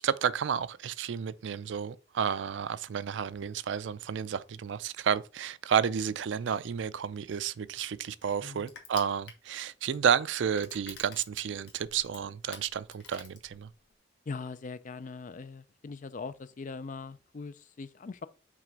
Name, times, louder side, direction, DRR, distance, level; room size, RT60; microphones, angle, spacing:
voice 1, 0.0-13.7, right 7 dB, 70° right, 0.4 m, -31 dB
Crushing, 7.1-14.0, left 6 dB, 65° left, 1.5 m, -51 dB
voice 2, 14.3-18.3, left 4 dB, 45° left, 0.4 m, -41 dB
6.0 x 3.3 x 5.2 m
head